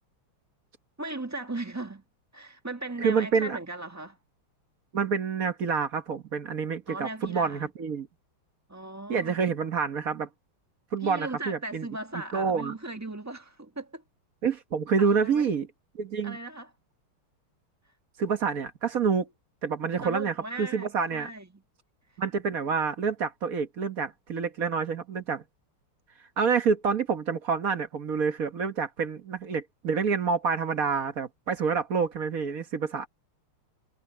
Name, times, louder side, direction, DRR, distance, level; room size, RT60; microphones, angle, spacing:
voice 1, 1.0-2.0 2.3-4.2 6.9-7.7 8.7-9.4 11.0-14.0 15.0-15.4 16.2-16.7 20.0-21.6, right 2 dB, 10° right, 1.2 m, -38 dB
voice 2, 3.0-3.6 4.9-8.1 9.1-10.3 10.9-11.9 12.3-12.7 14.4-15.7 15.9-16.4 18.2-19.3 19.6-21.3 22.2-25.4 26.4-33.1, right 5 dB, 45° right, 1.4 m, -27 dB
omnidirectional pair, 2.4 m